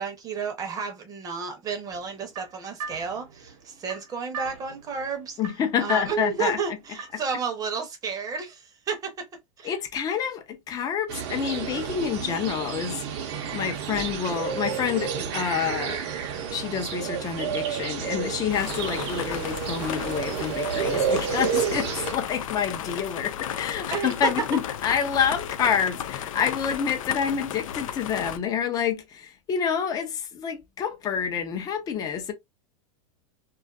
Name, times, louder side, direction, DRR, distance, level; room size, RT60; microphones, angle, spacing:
voice 1, 0.0-5.4 5.8-9.3 9.6-9.7 23.9-24.3, right 5 dB, 20° right, 0.7 m, -31 dB
sound 1, 1.9-7.3, right 5 dB, 85° right, 0.9 m, -41 dB
voice 2, 5.4-6.6 7.1-7.2 9.6-16.0 16.5-32.3, left 7 dB, 20° left, 0.5 m, -28 dB
sound 2, 11.1-22.1, right 7 dB, 55° right, 0.6 m, -30 dB
sound 3, 18.5-28.4, left 9 dB, 85° left, 0.4 m, -34 dB
2.4 x 2.3 x 2.3 m
supercardioid pair, 140°, 17 cm